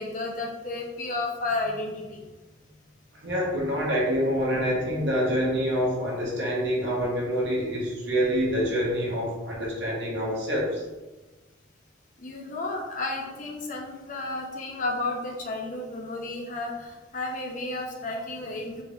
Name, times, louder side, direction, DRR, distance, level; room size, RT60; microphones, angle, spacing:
voice 1, 0.0-2.3 12.2-18.8, left 2 dB, 40° left, 0 dB, 0.5 m, -32 dB
voice 2, 3.2-10.8, equal, 65° right, -4 dB, 1.1 m, -26 dB
3.6 x 2.5 x 3.1 m, 1.1 s
head